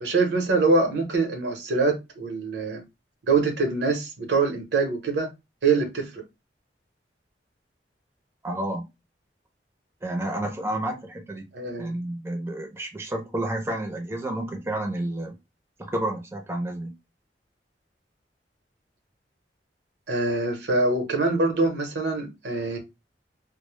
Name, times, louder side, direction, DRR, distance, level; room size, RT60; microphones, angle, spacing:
voice 1, 0.0-2.8 3.2-5.3 5.6-6.2 11.5-12.0 20.1-22.8, right 3 dB, 75° right, 0.7 m, -24 dB
voice 2, 8.4-8.9 10.0-11.5 11.8-15.4 15.8-16.9, right 1 dB, 15° right, 0.4 m, -30 dB
2.1 x 2.0 x 3.0 m
head